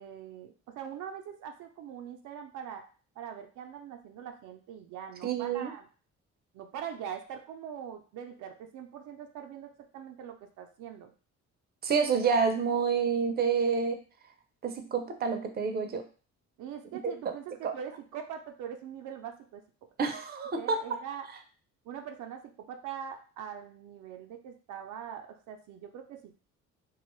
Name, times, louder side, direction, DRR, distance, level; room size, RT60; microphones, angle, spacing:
voice 1, 0.0-2.9 3.2-5.9 6.5-11.1 16.6-19.6 20.5-21.3 21.9-26.3, right 8 dB, 80° right, 4 dB, 0.5 m, -42 dB
voice 2, 5.2-5.7 11.8-14.0 14.6-16.0 17.0-17.1 17.6-17.7 20.0-20.8, right 5 dB, 35° right, 6 dB, 0.5 m, -28 dB
2.5 x 2.3 x 3.0 m, 0.38 s
cardioid pair, 90°, 30 cm